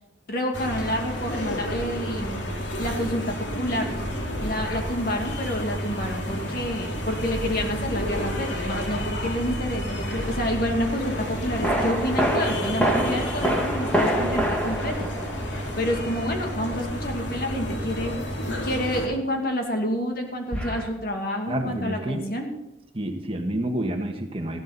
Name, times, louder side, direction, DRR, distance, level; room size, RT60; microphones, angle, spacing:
voice 1, 0.3-4.0 4.4-15.1 15.8-18.1 18.6-22.5, equal, 50° left, 2 dB, 2.4 m, -28 dB
sound 1, 0.5-19.1, equal, 75° left, 2.8 m, -31 dB
sound 2, 10.0-10.3 11.6-16.1 20.5-20.9, equal, 10° left, 2.1 m, -26 dB
voice 2, 21.5-22.2 22.9-24.6, right 1 dB, 30° right, 4 dB, 1.5 m, -29 dB
15.0 x 12.5 x 4.1 m, 0.97 s
head